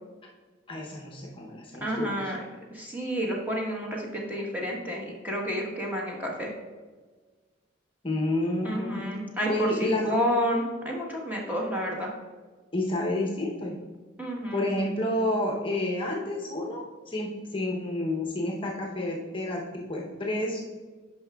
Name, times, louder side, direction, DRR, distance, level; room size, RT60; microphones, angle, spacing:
voice 1, 0.7-2.3 8.0-9.1 9.5-10.1 12.7-13.8 14.5-20.6, left 1 dB, 25° left, -1 dB, 0.7 m, -30 dB
voice 2, 1.8-2.4 2.7-6.5 8.6-12.1 14.2-14.7, equal, 10° right, -2 dB, 1.1 m, -30 dB
9.5 x 5.7 x 2.3 m, 1.4 s
head